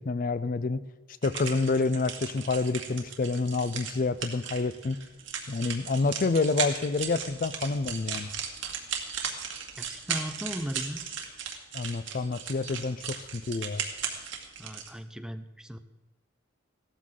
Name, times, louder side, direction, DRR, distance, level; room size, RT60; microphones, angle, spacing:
voice 1, 0.1-0.8 1.2-5.0 5.5-8.3 11.7-13.8, left 3 dB, 45° left, 14 dB, 0.4 m, -28 dB
sound 1, 1.2-14.9, right 7 dB, 75° right, 2.0 m, -36 dB
voice 2, 9.8-11.1 14.6-15.8, equal, 5° right, 9 dB, 0.6 m, -37 dB
16.5 x 13.5 x 3.8 m, 1.1 s
head